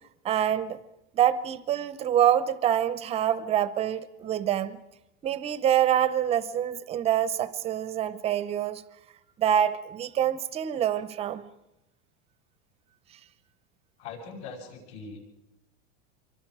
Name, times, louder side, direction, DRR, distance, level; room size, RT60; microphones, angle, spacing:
voice 1, 0.2-0.8 1.1-4.8 5.2-8.8 9.4-11.4, right 10 dB, 15° right, 0.7 m, -26 dB
voice 2, 14.0-15.2, left 4 dB, 65° left, 7.5 m, -41 dB
26.5 x 24.0 x 4.9 m
supercardioid pair, 175°, 37 cm